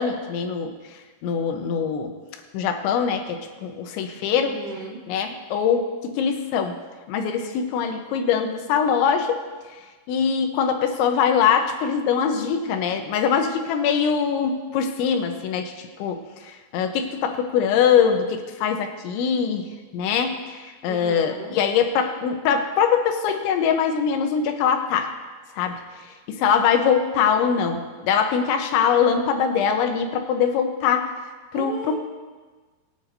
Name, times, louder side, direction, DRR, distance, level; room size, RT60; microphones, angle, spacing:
voice 1, 0.0-2.1 2.5-4.5 5.1-6.8 7.1-9.4 10.1-25.1 25.6-25.8 26.3-31.1 31.5-32.0, left 7 dB, 90° left, 5 dB, 3.3 m, -23 dB
voice 2, 4.4-5.0 20.9-21.6 31.5-32.0, right 3 dB, 65° right, -5 dB, 3.9 m, -35 dB
22.0 x 8.9 x 2.7 m, 1.4 s
omnidirectional pair, 5.2 m